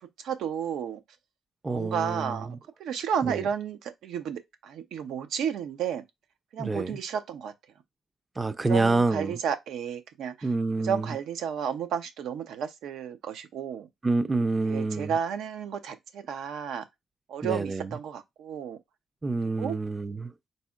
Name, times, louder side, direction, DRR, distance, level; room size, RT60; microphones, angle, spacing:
voice 1, 0.2-1.0 1.7-6.0 6.5-7.5 8.7-10.5 10.8-13.9 14.6-16.8 17.3-18.8 19.6-19.8, right 8 dB, 80° right, 0.6 m, -32 dB
voice 2, 1.6-2.4 3.2-3.5 6.6-7.0 8.4-9.3 10.4-11.1 14.0-15.1 17.4-17.9 19.2-20.3, right 3 dB, 20° right, 0.4 m, -27 dB
4.2 x 4.1 x 2.4 m
cardioid pair, 90°, 0 cm